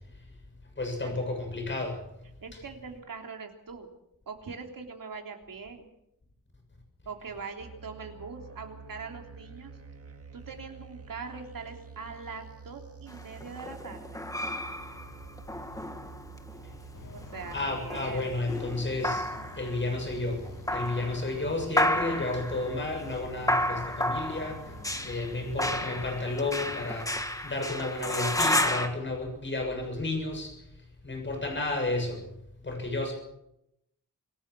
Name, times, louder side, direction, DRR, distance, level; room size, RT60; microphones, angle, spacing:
voice 1, 0.8-2.0 16.6-16.8 17.5-24.7 25.0-30.7 31.0-32.3 32.6-33.1, left 2 dB, 35° left, 3 dB, 6.9 m, -32 dB
voice 2, 2.4-3.9 4.3-5.9 7.0-9.7 10.3-14.2 17.1-18.3, right 5 dB, 80° right, 3 dB, 3.3 m, -42 dB
sound 1, 7.6-26.2, right 5 dB, 45° right, 1.9 m, -48 dB
sound 2, 13.1-16.6 17.2-19.8 20.4-21.3 21.8-28.9, left 1 dB, 10° left, 1.6 m, -31 dB
sound 3, 16.9-26.9, left 5 dB, 75° left, 2.2 m, -48 dB
26.5 x 17.5 x 6.2 m, 0.81 s
wide cardioid pair, 150°, 33 cm